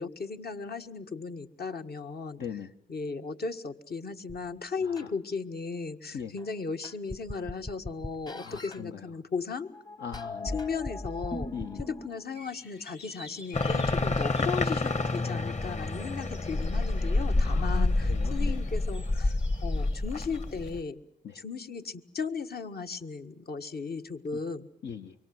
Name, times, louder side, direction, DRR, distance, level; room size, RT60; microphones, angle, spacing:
voice 1, 0.0-2.4 2.9-9.7 10.5-11.5 11.8-21.0 21.3-24.7, left 5 dB, 60° left, 7 dB, 1.7 m, -36 dB
voice 2, 2.4-2.7 4.8-5.1 6.1-6.3 8.4-9.0 10.0-10.7 11.5-11.8 17.4-18.6 21.2-21.4 24.3-24.4 24.8-25.1, left 8 dB, 75° left, 6 dB, 1.1 m, -40 dB
sound 1, 4.3-4.4 5.0-5.1 6.4-6.5 6.8-8.8 9.6-12.3, left 2 dB, 20° left, 1.1 m, -38 dB
sound 2, 12.3-20.7, left 3 dB, 90° left, 5.5 m, -52 dB
sound 3, 13.5-20.8, left 2 dB, 40° left, 1.5 m, -28 dB
25.0 x 24.0 x 7.9 m, 0.69 s
cardioid pair, 45°, 18 cm